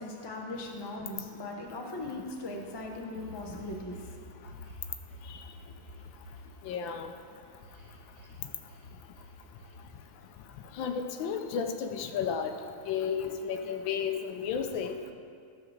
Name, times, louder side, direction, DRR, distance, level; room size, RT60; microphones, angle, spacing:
voice 1, 0.0-4.2, left 2 dB, 35° left, 0 dB, 0.4 m, -39 dB
sound 1, 2.7-4.1 4.4-6.4 7.6-8.4 8.6-8.8 9.2-9.3 9.6-9.7, equal, 45° right, 1.8 m, -49 dB
voice 2, 6.6-7.1 10.8-12.6 12.9-15.1, left 7 dB, 75° left, 6 dB, 1.4 m, -33 dB
12.5 x 4.8 x 6.4 m, 2.3 s
omnidirectional pair, 2.2 m